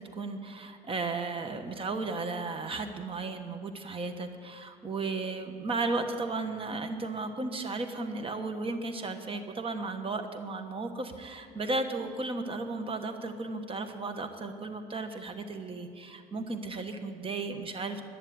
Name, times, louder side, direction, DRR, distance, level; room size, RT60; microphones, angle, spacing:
voice 1, 0.0-18.0, right 3 dB, 35° right, 8 dB, 1.1 m, -35 dB
10.5 x 10.0 x 9.1 m, 2.5 s
cardioid pair, 110°, 17 cm